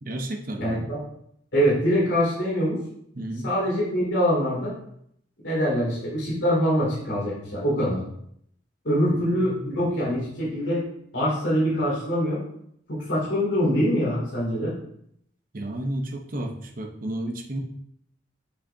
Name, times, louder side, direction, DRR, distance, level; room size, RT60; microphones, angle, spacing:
voice 1, 0.0-0.9 3.2-3.5 9.0-9.7 15.5-17.6, right 1 dB, 50° right, 2 dB, 0.8 m, -32 dB
voice 2, 0.6-1.0 1.5-2.8 3.4-4.7 5.4-8.0 8.8-10.8 11.1-12.4 12.9-14.7, equal, 75° left, -6 dB, 2.7 m, -24 dB
8.3 x 5.6 x 2.8 m, 0.71 s
head